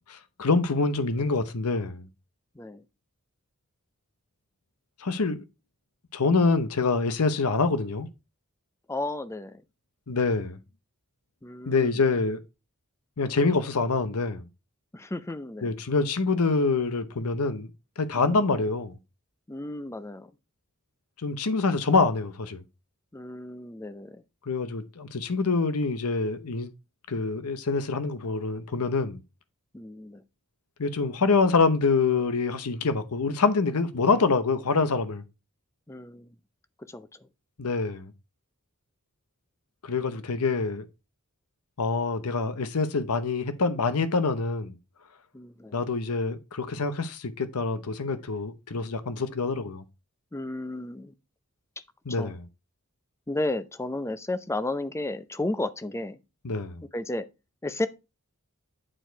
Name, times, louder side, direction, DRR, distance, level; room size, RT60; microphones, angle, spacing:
voice 1, 0.1-2.1 5.0-5.4 6.1-8.1 10.1-10.6 11.7-12.4 13.2-14.4 15.6-17.7 18.0-19.0 21.2-22.6 24.5-26.7 27.1-29.2 30.8-35.2 37.6-38.1 39.8-40.9 41.8-44.8 45.7-49.8 52.1-52.4 56.4-56.8, left 4 dB, 80° left, 0.8 m, -26 dB
voice 2, 8.9-9.6 11.4-12.0 14.9-15.8 19.5-20.3 23.1-24.2 29.7-30.2 35.9-36.3 36.9-37.3 45.3-45.8 50.3-51.1 52.1-52.4 53.3-56.2 56.9-57.3 57.6-57.9, left 2 dB, 10° left, 0.5 m, -33 dB
8.9 x 4.7 x 4.5 m
head